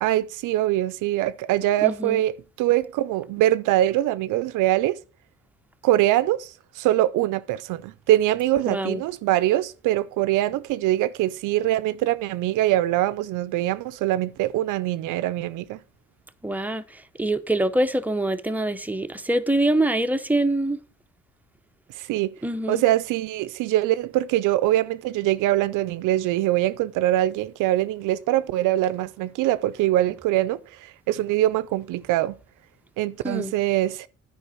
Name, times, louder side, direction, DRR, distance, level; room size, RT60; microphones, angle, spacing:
voice 1, 0.0-5.0 5.8-15.8 21.9-22.4 22.7-32.4 33.0-34.1, right 14 dB, 90° right, 0.5 m, -23 dB
voice 2, 1.8-2.2 8.7-9.0 16.4-20.8 22.4-22.8 33.2-33.5, right 1 dB, 5° right, 0.8 m, -24 dB
9.9 x 5.1 x 6.8 m
cardioid pair, 90°, 30 cm